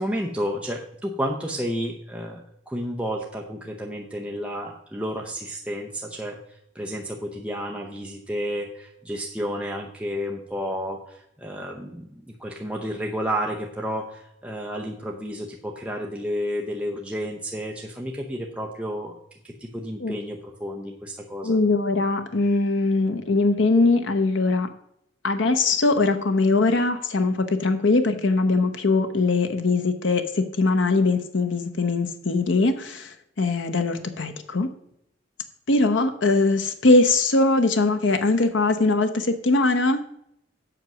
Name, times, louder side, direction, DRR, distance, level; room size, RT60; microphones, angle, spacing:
voice 1, 0.0-19.1 19.4-21.6, equal, 5° right, -1 dB, 0.7 m, -31 dB
voice 2, 21.4-24.7 25.2-34.7 35.7-40.0, left 3 dB, 80° left, 7 dB, 0.8 m, -21 dB
7.9 x 6.0 x 6.0 m, 0.74 s
head